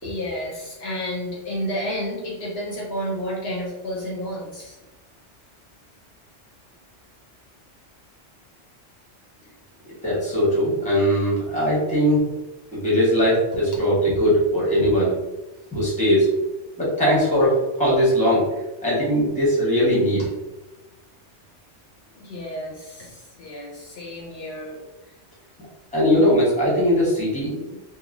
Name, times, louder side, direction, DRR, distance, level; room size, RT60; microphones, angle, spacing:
voice 1, 0.0-4.8 13.7-13.8 22.1-25.1 27.7-27.8, equal, 65° left, -2 dB, 0.8 m, -31 dB
voice 2, 9.9-12.2 12.7-15.1 15.7-16.3 16.8-18.5 18.8-20.2 25.9-27.6, equal, 5° left, -6 dB, 1.1 m, -20 dB
3.0 x 2.5 x 2.5 m, 1.0 s
omnidirectional pair, 1.2 m